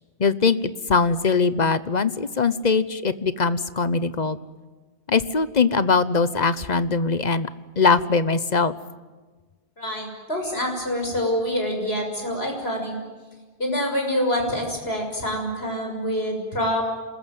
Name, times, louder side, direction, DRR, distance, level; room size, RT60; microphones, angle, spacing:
voice 1, 0.2-4.4 5.1-7.5 7.8-8.7, left 4 dB, 45° left, 14 dB, 1.1 m, -21 dB
voice 2, 9.8-12.9 13.6-16.9, equal, 75° left, 2 dB, 6.8 m, -26 dB
26.5 x 21.0 x 9.3 m, 1.3 s
omnidirectional pair, 1.0 m